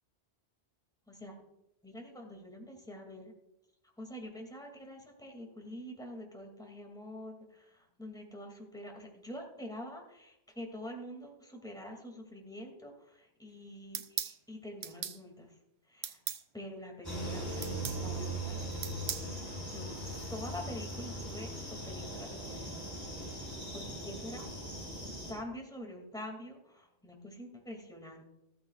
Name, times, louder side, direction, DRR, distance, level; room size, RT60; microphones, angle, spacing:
voice 1, 1.8-3.3 4.0-15.5 15.9-16.2 16.5-17.6 18.0-18.6 19.7-19.9 20.3-22.9 23.7-24.5 25.0-28.3, left 1 dB, 5° left, 1 dB, 2.4 m, -46 dB
sound 1, 13.9-14.4 14.8-15.2 16.0-16.4 17.6-18.0 18.8-19.3, right 8 dB, 70° right, 1.0 m, -37 dB
sound 2, 17.0-25.3, right 1 dB, 20° right, 5.3 m, -40 dB
15.5 x 14.0 x 2.4 m, 0.86 s
omnidirectional pair, 1.1 m